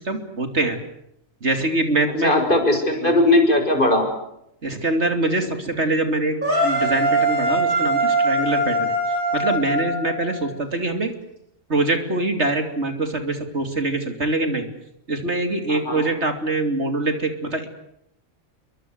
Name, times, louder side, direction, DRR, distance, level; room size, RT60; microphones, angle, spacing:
voice 1, 0.1-0.8 1.4-2.3 3.0-3.1 4.6-6.4 6.6-8.9 9.3-11.1 11.7-14.6 15.1-17.7, right 2 dB, 50° right, 7 dB, 3.3 m, -23 dB
voice 2, 2.2-4.0 15.7-16.1, left 1 dB, 35° left, 5 dB, 6.5 m, -18 dB
sound 1, 6.4-10.5, right 1 dB, 80° right, 8.7 m, -22 dB
28.5 x 24.0 x 8.1 m, 0.79 s
omnidirectional pair, 1.4 m